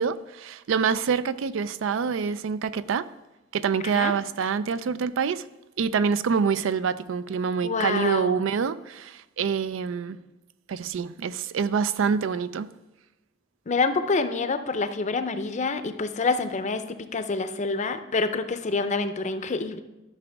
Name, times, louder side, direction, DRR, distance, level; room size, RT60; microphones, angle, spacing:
voice 1, 0.0-3.1 3.5-5.4 5.8-10.2 10.7-12.7, right 6 dB, 85° right, 0.4 m, -26 dB
voice 2, 7.6-8.4 13.7-19.8, left 3 dB, 40° left, 0.5 m, -27 dB
13.5 x 5.9 x 3.4 m
head